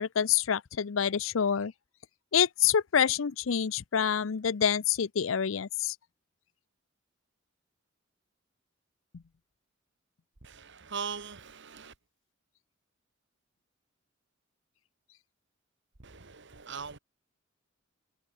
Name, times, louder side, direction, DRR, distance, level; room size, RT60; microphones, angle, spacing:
voice 1, 0.0-1.7 2.3-6.0, left 8 dB, 75° left, 0.6 m, -27 dB
voice 2, 10.4-11.9 16.0-17.0, right 5 dB, 60° right, 1.9 m, -40 dB
head